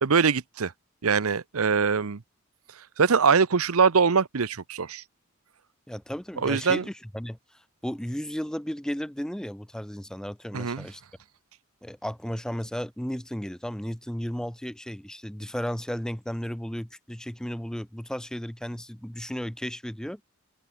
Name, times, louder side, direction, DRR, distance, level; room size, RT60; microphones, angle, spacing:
voice 1, 0.0-0.7 1.0-2.2 3.0-5.0 6.4-6.8 10.5-10.9, right 5 dB, 80° right, 0.8 m, -23 dB
voice 2, 5.9-11.0 11.8-20.2, equal, 5° left, 0.5 m, -34 dB
open air
head